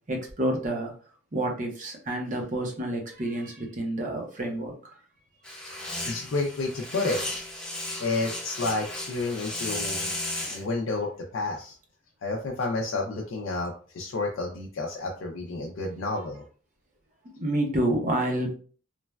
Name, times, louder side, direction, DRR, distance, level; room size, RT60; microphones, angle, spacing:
voice 1, 0.1-0.9 1.3-4.9 5.7-5.9 17.4-18.5, right 1 dB, 40° right, 2 dB, 0.6 m, -29 dB
sound 1, 5.4-10.6, left 1 dB, 5° left, 0.6 m, -34 dB
voice 2, 5.7-7.2 8.0-10.1 10.5-11.8 12.2-16.4, left 3 dB, 80° left, -1 dB, 0.4 m, -30 dB
3.1 x 2.1 x 2.2 m, 0.42 s
head